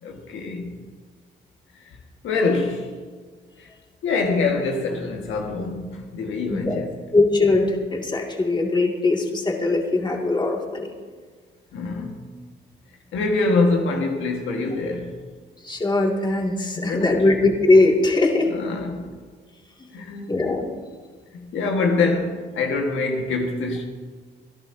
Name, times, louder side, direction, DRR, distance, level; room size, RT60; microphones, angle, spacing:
voice 1, 0.0-0.9 1.7-2.0 2.2-2.9 3.6-3.7 4.0-7.0 11.7-12.3 13.1-15.2 16.7-17.3 18.4-19.1 19.9-20.4 21.3-23.8, left 3 dB, 80° left, 1.5 m, -25 dB
voice 2, 7.1-10.9 15.6-18.5 19.8-19.9 20.3-20.6, left 2 dB, 20° left, 2.2 m, -20 dB
26.0 x 11.5 x 2.7 m
cardioid pair, 90°, 20 cm